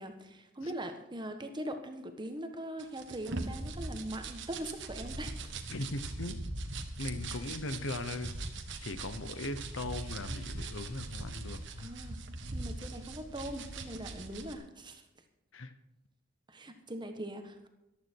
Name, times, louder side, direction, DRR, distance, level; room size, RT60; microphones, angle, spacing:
voice 1, 0.0-5.6 11.8-12.2 12.5-15.0 16.5-17.7, right 1 dB, 20° right, 6 dB, 1.3 m, -41 dB
sound 1, 2.8-14.5, right 2 dB, 60° right, 1.5 m, -41 dB
voice 2, 5.7-6.4 7.0-8.3 8.8-11.9 15.5-15.7, left 2 dB, 65° left, 12 dB, 0.9 m, -39 dB
14.5 x 12.0 x 4.6 m, 0.92 s
head